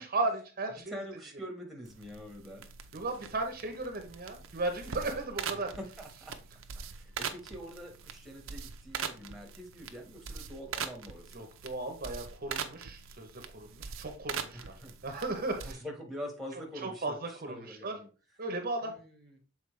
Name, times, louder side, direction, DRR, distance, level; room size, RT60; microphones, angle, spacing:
voice 1, 0.0-1.0 2.9-5.7 11.3-14.7 15.0-15.8 16.8-18.0 18.4-19.0, right 2 dB, 45° right, 5 dB, 0.9 m, -35 dB
voice 2, 0.9-2.7 5.5-6.4 6.8-11.5 14.5-14.9 15.6-18.1 18.8-19.4, equal, ahead, 1 dB, 1.3 m, -45 dB
sound 1, 1.8-15.7, right 6 dB, 70° right, 0.7 m, -42 dB
6.9 x 4.3 x 3.2 m, 0.36 s
head